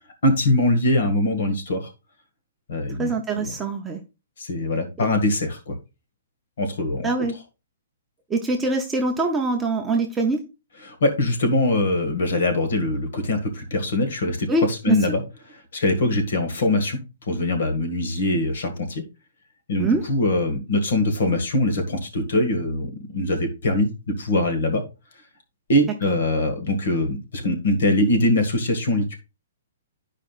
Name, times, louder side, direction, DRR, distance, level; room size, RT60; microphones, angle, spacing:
voice 1, 0.2-1.9 2.7-3.5 4.4-5.8 6.6-7.1 10.9-15.2 15.7-17.0 17.3-19.0 19.7-24.8 25.7-29.1, left 1 dB, 55° left, 6 dB, 1.8 m, -22 dB
voice 2, 2.9-4.0 5.0-5.1 7.0-7.4 8.3-10.4 14.5-15.0 19.8-20.0 26.1-26.2, right 3 dB, 5° right, 1 dB, 0.6 m, -24 dB
11.5 x 4.9 x 2.4 m, 0.27 s
hypercardioid pair, 180°, 0 cm